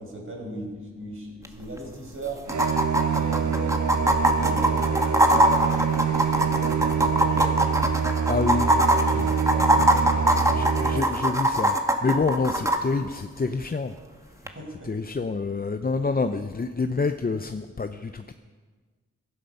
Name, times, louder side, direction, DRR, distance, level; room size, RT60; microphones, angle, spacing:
voice 1, 0.0-2.5 3.1-3.9 4.3-7.6 8.5-10.4 14.4-14.9, right 2 dB, 45° right, -1 dB, 5.3 m, -38 dB
sound 1, 1.4-1.5 1.8-1.9 2.5-12.8 14.5-14.6, right 1 dB, 10° right, 1.6 m, -22 dB
sound 2, 2.5-11.0, right 7 dB, 85° right, 0.8 m, -25 dB
voice 2, 8.3-8.8 9.1-9.3 10.5-13.9 14.8-18.3, left 4 dB, 30° left, 8 dB, 0.6 m, -27 dB
15.5 x 11.5 x 5.5 m, 1.4 s
cardioid pair, 45°, 29 cm